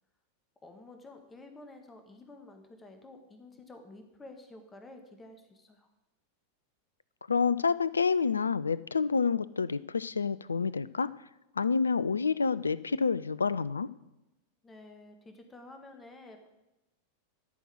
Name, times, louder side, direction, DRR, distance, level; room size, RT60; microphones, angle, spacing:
voice 1, 0.6-5.9 14.6-16.5, left 2 dB, 15° left, 6 dB, 1.6 m, -51 dB
voice 2, 7.3-11.1 11.6-13.9, left 5 dB, 75° left, 18 dB, 0.4 m, -28 dB
12.5 x 6.3 x 7.9 m, 0.95 s
figure-of-eight pair, 90°, 0 cm